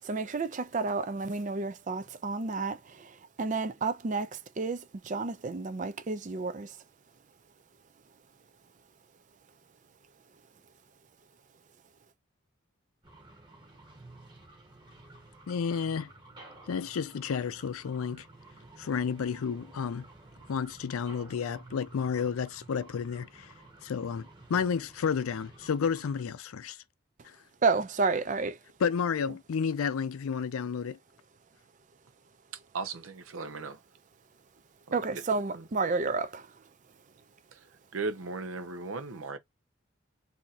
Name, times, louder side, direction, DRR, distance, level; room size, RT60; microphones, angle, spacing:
voice 1, 0.0-6.7 27.6-28.6 34.9-36.5, right 4 dB, 40° right, 0.4 m, -31 dB
sound 1, 13.0-26.2, right 2 dB, 20° right, 1.0 m, -53 dB
voice 2, 15.5-16.1 16.7-18.3 18.8-20.0 20.5-23.5 23.8-26.8 27.2-27.4 28.8-31.0, left 6 dB, 90° left, 0.4 m, -31 dB
voice 3, 32.7-33.8 34.9-35.2 35.5-35.7 37.5-37.6 37.9-39.4, right 3 dB, 80° right, 0.7 m, -37 dB
2.7 x 2.4 x 4.0 m
head